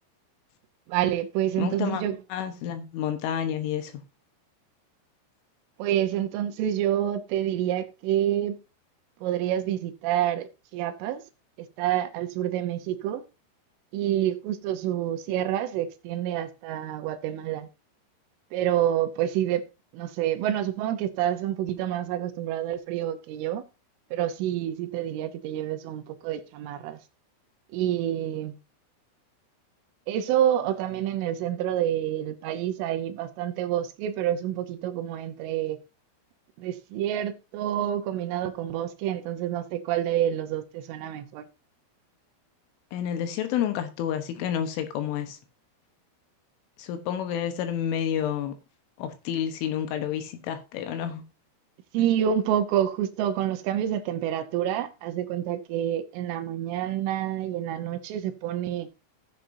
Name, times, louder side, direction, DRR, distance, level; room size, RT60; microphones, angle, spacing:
voice 1, 0.9-2.2 5.8-8.6 9.2-11.2 11.8-13.2 13.9-17.7 18.5-19.6 19.9-23.6 24.1-27.0 27.7-28.6 30.1-35.8 36.6-41.5 51.9-58.9, right 11 dB, 80° right, 3.2 m, -28 dB
voice 2, 1.6-2.0 2.3-4.0 42.9-45.4 46.8-48.6 49.0-51.2, left 9 dB, 75° left, 3.4 m, -29 dB
15.0 x 7.8 x 2.7 m
omnidirectional pair, 5.9 m